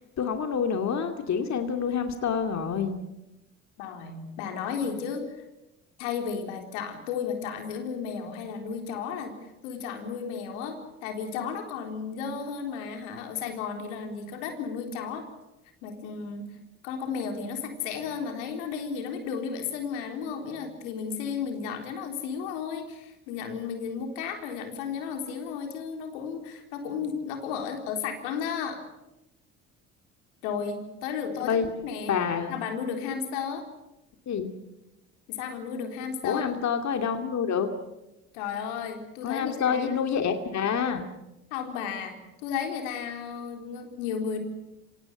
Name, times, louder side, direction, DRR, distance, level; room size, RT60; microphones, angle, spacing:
voice 1, 0.0-3.0 31.4-31.7 32.1-32.6 34.3-34.5 36.2-37.7 39.2-41.1, left 7 dB, 50° left, 6 dB, 2.4 m, -27 dB
voice 2, 3.8-5.4 6.0-9.3 9.6-15.3 15.8-16.5 16.8-28.8 30.4-32.2 32.5-33.7 35.3-36.5 38.3-40.0 41.5-44.4, left 6 dB, 85° left, 5 dB, 3.8 m, -34 dB
25.0 x 18.0 x 9.2 m, 0.96 s
supercardioid pair, 70°, 35 cm